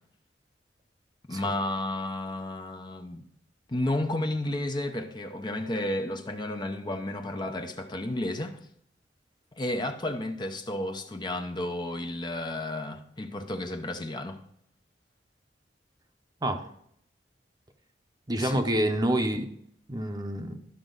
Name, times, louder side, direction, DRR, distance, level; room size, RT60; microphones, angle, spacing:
voice 1, 1.3-3.3 3.7-8.6 9.5-14.4 18.4-18.6, left 1 dB, 25° left, 0.7 m, -32 dB
voice 2, 18.3-19.5 19.9-20.6, right 1 dB, 25° right, 0.9 m, -27 dB
12.5 x 6.1 x 3.9 m
head